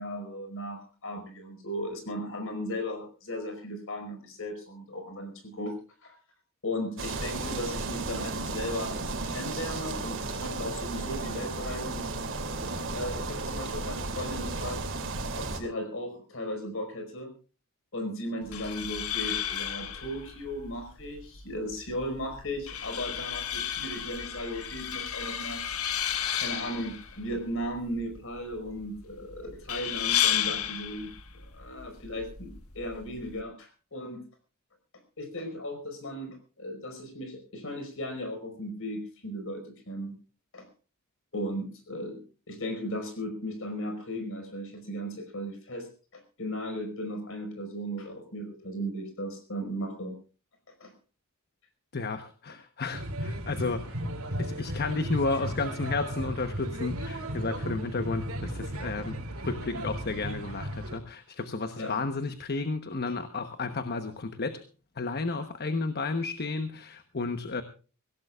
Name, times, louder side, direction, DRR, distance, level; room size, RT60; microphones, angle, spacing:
voice 1, 0.0-5.7 6.0-6.2 6.6-9.0 9.2-12.1 12.9-14.8 15.3-17.3 17.9-25.7 26.4-31.1 31.5-34.2 35.2-40.2 40.5-40.7 41.3-42.2 42.5-50.2 50.8-50.9 61.8-62.0 63.1-63.2, equal, 65° left, 7 dB, 5.1 m, -36 dB
sound 1, 7.0-15.6, right 3 dB, 60° right, 2.9 m, -34 dB
sound 2, 18.4-33.4, left 10 dB, 90° left, 1.5 m, -33 dB
voice 2, 51.9-53.9 54.4-64.6 65.0-67.6, left 3 dB, 50° left, 9 dB, 1.0 m, -32 dB
sound 3, 52.9-61.0, equal, 85° right, 2.9 m, -35 dB
24.0 x 16.5 x 2.4 m, 0.36 s
head